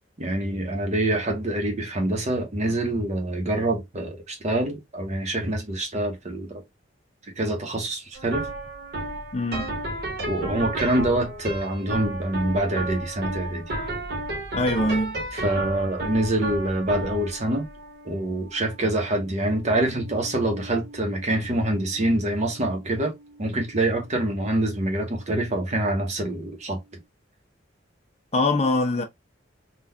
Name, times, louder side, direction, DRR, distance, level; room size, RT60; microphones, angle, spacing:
voice 1, 0.2-6.6 7.4-8.5 10.3-13.6 15.3-17.7 18.0-23.1 23.4-26.8, right 1 dB, 40° right, 1.0 m, -25 dB
sound 1, 8.1-25.3, right 2 dB, 55° right, 1.3 m, -34 dB
voice 2, 9.3-9.7 14.5-15.2 28.3-29.0, left 2 dB, 35° left, 0.8 m, -23 dB
3.8 x 2.5 x 2.8 m
head